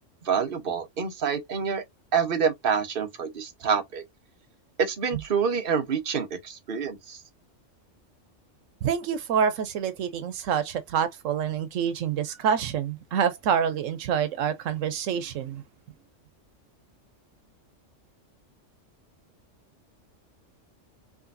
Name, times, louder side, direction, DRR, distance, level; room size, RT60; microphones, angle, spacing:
voice 1, 0.2-1.8 2.1-4.0 4.8-7.2, right 6 dB, 50° right, 1.2 m, -27 dB
voice 2, 8.8-15.6, right 8 dB, 90° right, 1.1 m, -27 dB
5.0 x 3.1 x 2.6 m
omnidirectional pair, 1.3 m